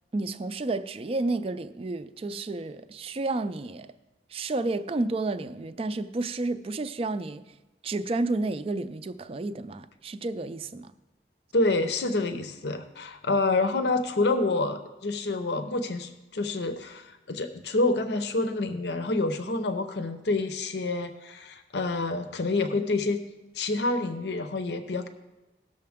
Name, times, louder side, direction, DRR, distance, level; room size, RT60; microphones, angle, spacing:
voice 1, 0.1-3.9 4.3-7.5 7.8-10.9, right 2 dB, 30° right, 0.4 m, -31 dB
voice 2, 11.5-23.2 23.5-25.1, left 2 dB, 70° left, 0.7 m, -27 dB
18.0 x 6.7 x 3.5 m
head